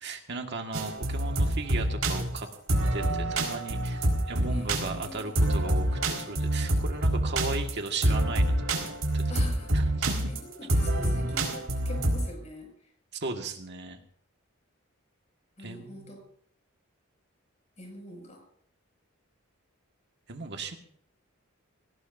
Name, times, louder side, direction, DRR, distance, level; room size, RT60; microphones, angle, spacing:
voice 1, 0.0-2.5 2.9-9.4 9.7-10.3 13.2-14.0 15.6-16.2 20.3-20.8, right 3 dB, 55° right, 3 dB, 1.7 m, -37 dB
sound 1, 0.7-12.2, right 1 dB, 85° right, 4.7 m, -26 dB
voice 2, 4.5-5.4 9.3-10.0 10.3-12.7 15.6-16.2 17.8-18.4, left 1 dB, 35° left, 1 dB, 6.4 m, -44 dB
24.0 x 18.0 x 2.7 m, 0.65 s
head